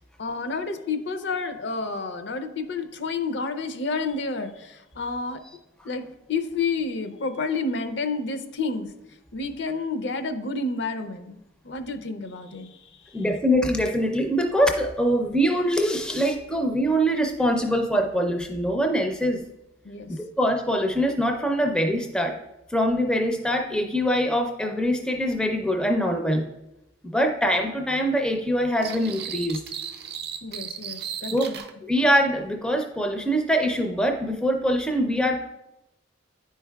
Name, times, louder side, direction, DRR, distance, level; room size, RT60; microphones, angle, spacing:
voice 1, 0.2-5.4 5.8-8.9 9.3-11.4 11.6-12.8 19.8-20.1 30.4-31.6, left 3 dB, 65° left, 8 dB, 0.5 m, -30 dB
voice 2, 13.1-19.4 20.1-22.4 22.7-26.5 27.0-29.6 31.3-31.5 31.8-35.4, equal, 5° left, 3 dB, 0.4 m, -23 dB
sound 1, 28.8-31.7, right 8 dB, 55° right, 0.4 m, -35 dB
9.9 x 4.6 x 2.2 m, 0.91 s
head